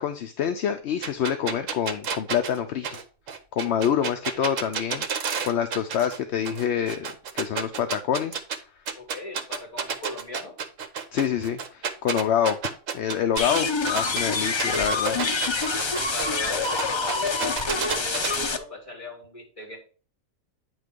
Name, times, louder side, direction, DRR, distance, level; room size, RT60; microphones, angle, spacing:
voice 1, 0.0-2.9 3.5-5.1 5.4-8.4 11.1-12.6 12.9-15.2, left 8 dB, 65° left, 8 dB, 0.8 m, -26 dB
sound 1, 1.0-6.2 6.4-8.6 8.9-14.2 14.6-18.4, right 6 dB, 70° right, 1.2 m, -31 dB
voice 2, 8.9-10.6 16.1-19.8, left 1 dB, 25° left, -1 dB, 2.9 m, -38 dB
sound 2, 13.4-18.6, left 4 dB, 45° left, 0.3 m, -26 dB
9.1 x 3.2 x 5.0 m, 0.38 s
omnidirectional pair, 1.4 m